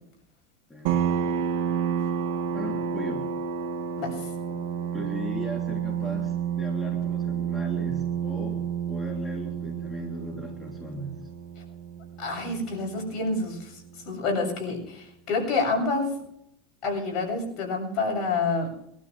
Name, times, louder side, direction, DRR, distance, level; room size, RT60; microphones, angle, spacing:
sound 1, 0.9-14.1, right 8 dB, 75° right, 1.5 m, -30 dB
voice 1, 2.5-3.4 4.5-4.6 4.9-11.3, left 1 dB, 10° left, 0 dB, 3.1 m, -37 dB
voice 2, 4.0-4.3 12.2-16.1 16.8-18.7, left 3 dB, 50° left, 1 dB, 7.5 m, -28 dB
23.5 x 12.5 x 3.3 m, 0.76 s
supercardioid pair, 110°, 0 cm